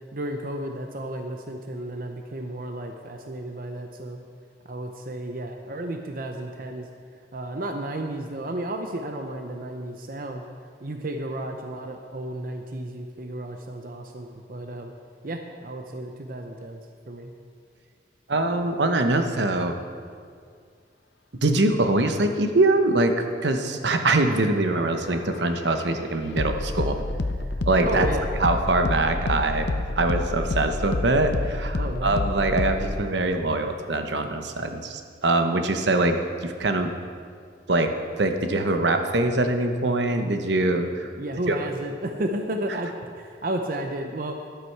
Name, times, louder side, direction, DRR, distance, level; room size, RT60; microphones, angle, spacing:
voice 1, 0.1-4.2 4.6-6.9 7.3-10.4 10.8-14.9 15.2-17.3 27.8-28.3 31.7-32.2 41.2-44.4, right 1 dB, 50° right, 4 dB, 0.7 m, -33 dB
voice 2, 18.3-19.8 21.4-27.0 27.6-28.1 28.4-29.7 30.0-36.9 37.7-41.1 41.5-41.6, right 2 dB, 75° right, 6 dB, 1.0 m, -23 dB
sound 1, 24.3-33.0, left 2 dB, 75° left, 0.7 m, -29 dB
13.5 x 11.5 x 4.7 m, 2.1 s
head